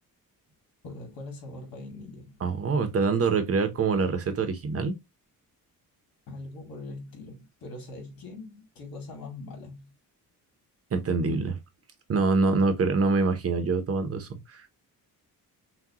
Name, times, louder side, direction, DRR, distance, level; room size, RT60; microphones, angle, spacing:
voice 1, 0.8-2.4 6.3-9.9, left 2 dB, 75° left, 2.3 m, -42 dB
voice 2, 2.4-4.9 10.9-11.5 12.1-14.6, right 4 dB, 40° right, 0.8 m, -25 dB
6.0 x 2.3 x 2.8 m
wide cardioid pair, 155°, 35 cm